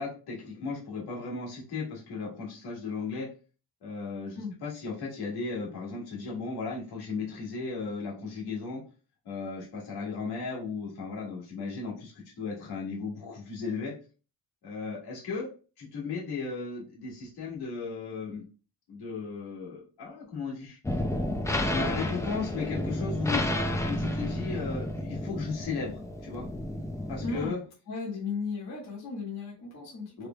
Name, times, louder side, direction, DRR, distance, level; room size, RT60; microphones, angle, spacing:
voice 1, 0.0-3.3 3.8-8.8 9.3-13.9 14.6-15.5 15.8-18.5 18.9-20.8 21.6-23.4 23.9-26.4 27.1-27.6 30.2-30.3, left 4 dB, 75° left, -4 dB, 2.0 m, -36 dB
sound 1, 20.8-27.5, left 1 dB, 10° left, 0.3 m, -31 dB
voice 2, 27.2-27.6 27.9-30.3, left 4 dB, 45° left, -5 dB, 1.4 m, -35 dB
4.8 x 3.4 x 2.3 m, 0.35 s
cardioid pair, 170°, 39 cm